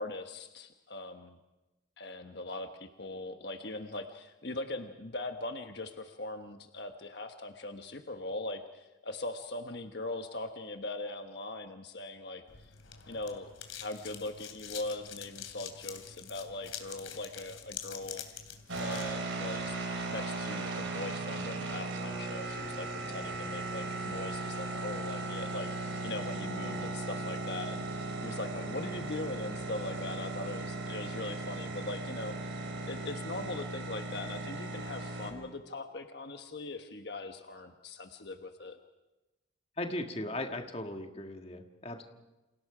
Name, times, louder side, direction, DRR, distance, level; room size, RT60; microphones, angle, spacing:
voice 1, 0.0-1.4 2.0-12.7 13.1-13.5 13.8-18.2 18.8-38.8, left 2 dB, 55° left, 6 dB, 1.2 m, -41 dB
sound 1, 12.5-19.1, left 9 dB, 85° left, 3.0 m, -46 dB
sound 2, 18.7-35.3, right 2 dB, 90° right, 4.1 m, -37 dB
voice 2, 39.8-42.0, left 1 dB, 30° left, 4 dB, 1.8 m, -37 dB
29.5 x 27.5 x 5.0 m, 1.0 s
head